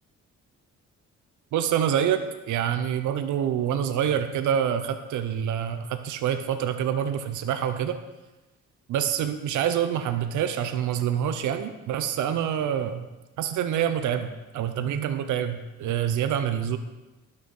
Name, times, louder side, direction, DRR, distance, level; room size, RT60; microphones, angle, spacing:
voice 1, 1.5-2.2 2.5-8.0 8.9-13.1 13.4-16.8, right 9 dB, 75° right, 8 dB, 0.8 m, -26 dB
11.5 x 6.6 x 5.4 m, 1.1 s
cardioid pair, 90°, 30 cm